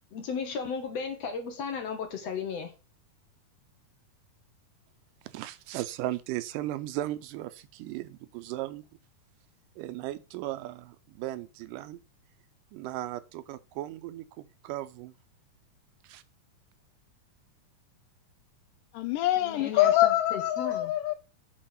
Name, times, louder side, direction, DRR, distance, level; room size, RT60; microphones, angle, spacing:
voice 1, 0.1-2.7 19.4-20.9, left 6 dB, 60° left, 2.2 m, -35 dB
voice 2, 5.2-8.9 9.8-12.0 12.7-15.1 16.0-16.2, right 15 dB, 85° right, 2.2 m, -36 dB
voice 3, 18.9-21.2, left 14 dB, 80° left, 2.4 m, -25 dB
7.6 x 4.7 x 5.8 m
omnidirectional pair, 3.8 m